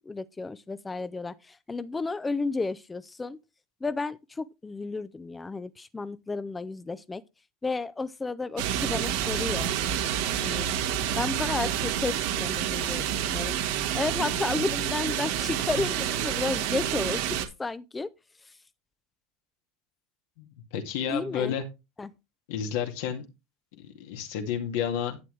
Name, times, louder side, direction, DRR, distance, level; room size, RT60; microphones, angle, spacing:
voice 1, 0.1-3.4 3.8-7.2 7.6-9.8 10.4-10.7 11.2-13.6 13.9-18.1 18.4-18.5 21.1-21.5 22.0-22.1, left 3 dB, 15° left, 0.6 m, -32 dB
sound 1, 8.6-17.5, right 10 dB, 75° right, 1.6 m, -28 dB
voice 2, 20.7-21.6 22.5-23.3 23.8-25.2, left 8 dB, 75° left, 2.2 m, -31 dB
11.0 x 7.7 x 3.3 m
supercardioid pair, 115°, 0 cm